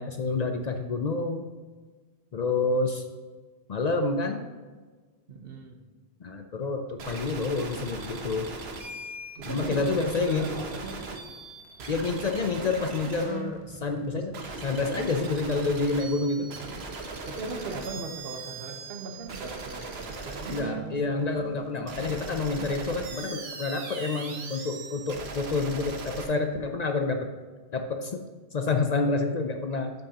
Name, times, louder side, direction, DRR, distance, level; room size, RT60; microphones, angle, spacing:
voice 1, 0.0-1.5 2.3-3.0 3.7-4.4 6.2-8.5 9.5-10.5 11.9-14.3 14.6-16.5 20.5-27.2 27.7-28.2 28.5-29.9, left 3 dB, 50° left, 5 dB, 0.6 m, -28 dB
voice 2, 5.3-5.8 9.4-11.0 17.3-21.1, right 2 dB, 70° right, 4 dB, 1.2 m, -38 dB
sound 1, 7.0-26.2, right 3 dB, 90° right, 1.1 m, -39 dB
13.0 x 5.3 x 2.9 m, 1.4 s
omnidirectional pair, 1.0 m